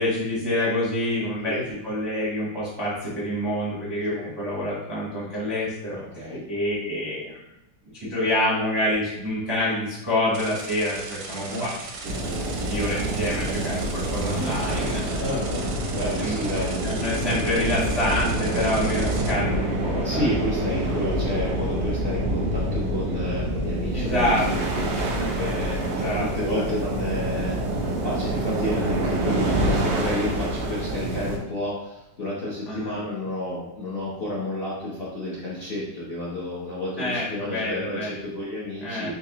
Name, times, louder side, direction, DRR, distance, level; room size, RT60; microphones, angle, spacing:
voice 1, 0.0-1.6 1.8-7.4 7.9-11.7 12.0-15.2 16.2-16.4 16.8-20.3 23.9-24.4 25.8-26.7 32.7-33.0 37.0-38.3 38.8-39.2, left 1 dB, 30° right, -8 dB, 0.5 m, -27 dB
voice 2, 6.0-6.4 11.3-11.7 15.2-16.7 20.0-39.1, left 1 dB, 55° left, -7 dB, 0.7 m, -31 dB
sound 1, 10.3-19.3, right 3 dB, 70° right, 0.9 m, -38 dB
sound 2, 12.0-31.4, right 1 dB, 90° right, 1.5 m, -27 dB
4.0 x 2.9 x 2.8 m, 0.87 s
omnidirectional pair, 2.0 m